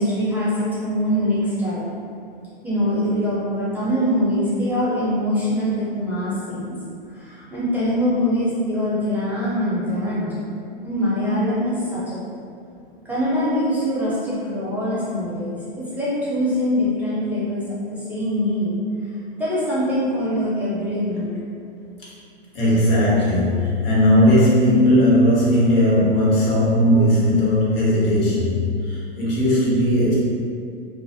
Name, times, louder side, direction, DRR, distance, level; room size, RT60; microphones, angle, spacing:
voice 1, 0.0-1.9 2.6-6.8 7.1-10.4 10.8-12.3 13.0-18.8 19.4-21.3, equal, 5° right, -10 dB, 0.4 m, -23 dB
voice 2, 22.5-30.2, left 1 dB, 70° left, -7 dB, 1.1 m, -17 dB
2.4 x 2.1 x 2.5 m, 2.4 s
hypercardioid pair, 110°, 29 cm